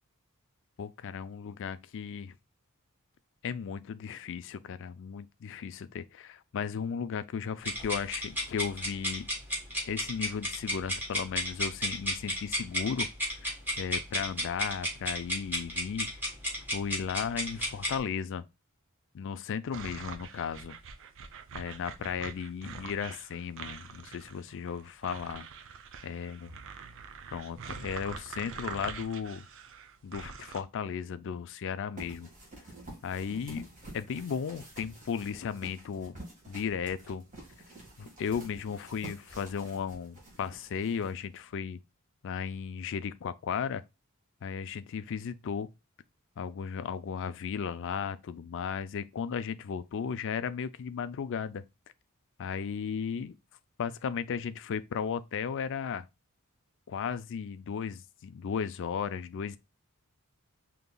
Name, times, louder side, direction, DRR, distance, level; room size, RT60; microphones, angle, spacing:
voice 1, 0.8-2.3 3.4-9.3 9.8-13.1 13.4-16.1 16.7-18.4 19.1-20.8 21.5-25.5 26.0-26.5 27.3-29.5 30.0-32.3 33.0-33.7 33.9-36.2 36.5-37.2 38.0-41.8 42.2-43.8 44.4-45.7 46.4-51.6 52.4-53.3 53.8-56.1 56.9-59.6, left 7 dB, 60° left, 0.4 m, -35 dB
sound 1, 7.6-18.0, equal, 10° right, 1.5 m, -33 dB
sound 2, 19.7-30.6, right 6 dB, 65° right, 0.5 m, -44 dB
sound 3, 32.0-41.5, right 2 dB, 35° right, 1.8 m, -49 dB
5.2 x 2.9 x 2.2 m
head